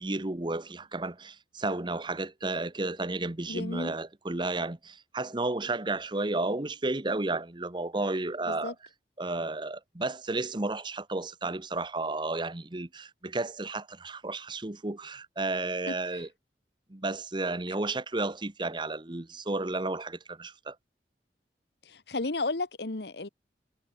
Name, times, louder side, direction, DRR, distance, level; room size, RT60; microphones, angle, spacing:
voice 1, 0.0-8.7 9.2-16.3 16.9-20.8, right 2 dB, 25° right, 1.0 m, -32 dB
voice 2, 3.5-3.9 8.5-8.7 15.9-16.0 21.9-23.3, left 3 dB, 70° left, 1.3 m, -33 dB
head